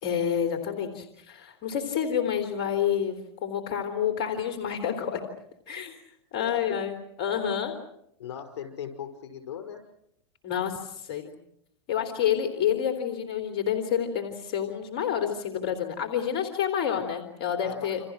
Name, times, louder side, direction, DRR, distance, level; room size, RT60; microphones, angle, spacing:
voice 1, 0.0-5.2 5.7-5.9 6.3-7.7 10.4-11.3 11.9-18.0, left 8 dB, 55° left, 5 dB, 3.6 m, -28 dB
voice 2, 6.4-6.8 8.2-9.8 17.6-17.9, left 8 dB, 80° left, 5 dB, 5.8 m, -38 dB
29.0 x 27.5 x 6.3 m, 0.77 s
hypercardioid pair, 100°, 14 cm